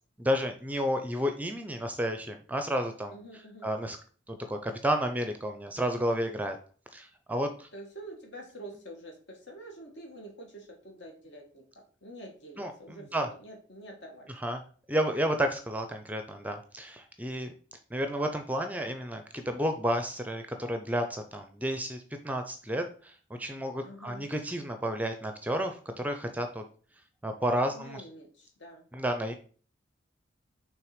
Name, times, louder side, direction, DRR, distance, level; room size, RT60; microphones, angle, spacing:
voice 1, 0.2-3.1 3.6-4.0 4.3-6.6 6.9-7.7 12.6-13.3 14.4-14.6 14.9-17.5 17.9-26.6 27.2-28.0 28.9-29.3, equal, 10° right, 7 dB, 0.5 m, -31 dB
voice 2, 3.1-3.7 7.7-11.6 12.0-14.3 23.8-24.3 27.7-28.8, right 1 dB, 65° left, 2 dB, 1.9 m, -47 dB
5.9 x 3.8 x 5.0 m, 0.42 s
head